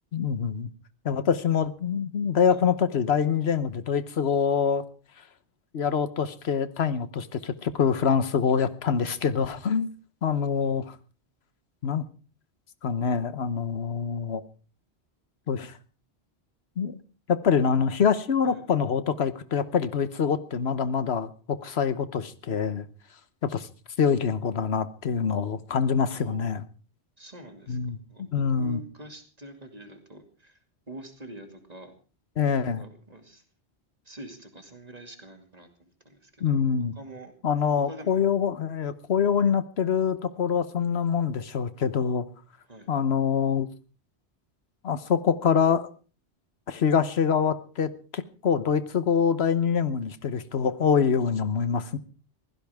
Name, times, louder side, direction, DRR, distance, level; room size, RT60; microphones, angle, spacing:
voice 1, 0.1-0.7 1.0-4.8 5.7-9.9 10.2-10.9 11.8-12.0 12.8-14.4 15.5-15.7 16.8-17.0 17.3-22.9 23.4-23.7 24.0-26.6 27.7-28.0 28.3-28.8 32.4-32.8 36.4-36.9 37.4-42.2 42.9-43.7 44.8-45.9 46.7-52.0, left 6 dB, 70° left, 13 dB, 1.3 m, -25 dB
voice 2, 26.1-26.5 27.2-27.8 28.1-30.6 30.9-31.9 32.7-33.4 34.0-36.5 36.9-37.3 37.8-38.2 42.7-42.9, equal, 35° right, 5 dB, 2.6 m, -45 dB
22.0 x 16.0 x 3.6 m, 0.37 s
omnidirectional pair, 1.1 m